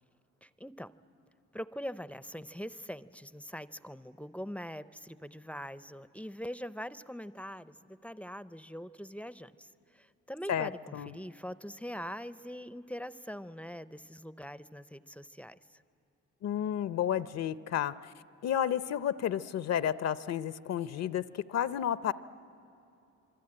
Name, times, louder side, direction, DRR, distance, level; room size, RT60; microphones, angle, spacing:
voice 1, 0.4-0.9 1.5-15.8, equal, 5° left, 14 dB, 0.5 m, -43 dB
voice 2, 10.5-11.1 16.4-18.1 18.4-22.1, left 10 dB, 60° left, 15 dB, 0.6 m, -31 dB
26.0 x 23.5 x 8.7 m, 2.8 s
cardioid pair, 90°, 30 cm